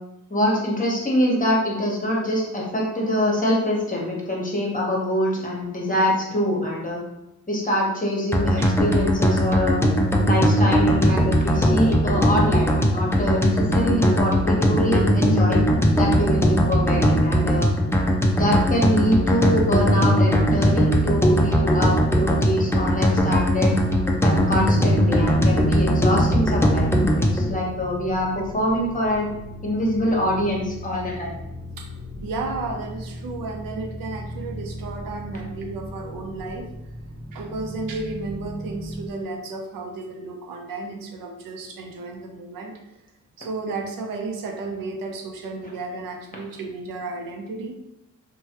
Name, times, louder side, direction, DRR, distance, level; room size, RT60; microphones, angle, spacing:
voice 1, 0.3-7.0 7.5-9.8 10.3-15.6 15.9-17.7 18.2-23.8 24.2-29.3 29.6-31.3, left 1 dB, 25° left, -3 dB, 1.0 m, -24 dB
sound 1, 8.3-27.5, equal, 10° left, 0.4 m, -19 dB
sound 2, 25.5-39.1, equal, 40° right, 0.8 m, -37 dB
voice 2, 32.2-36.7 37.3-42.8 43.4-47.7, right 3 dB, 90° right, 2 dB, 0.6 m, -33 dB
3.1 x 2.2 x 2.9 m, 0.91 s
cardioid pair, 70°, 33 cm